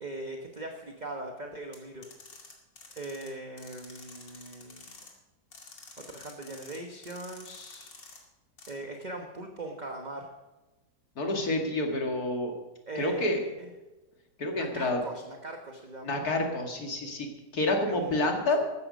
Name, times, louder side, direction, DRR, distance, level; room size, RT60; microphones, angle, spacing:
voice 1, 0.0-2.1 3.0-4.8 6.0-7.9 8.7-10.3 12.9-13.7 14.5-16.2 17.9-18.6, right 2 dB, 30° right, 3 dB, 1.1 m, -40 dB
sound 1, 1.7-3.3 3.6-5.1 5.5-6.8 7.0-8.2 8.6-8.7, left 3 dB, 90° left, 3.1 m, -49 dB
voice 2, 11.2-12.5 12.9-13.4 14.4-15.0 16.0-18.6, left 2 dB, 60° left, 2 dB, 2.6 m, -28 dB
14.5 x 13.0 x 5.3 m, 1.1 s
omnidirectional pair, 1.9 m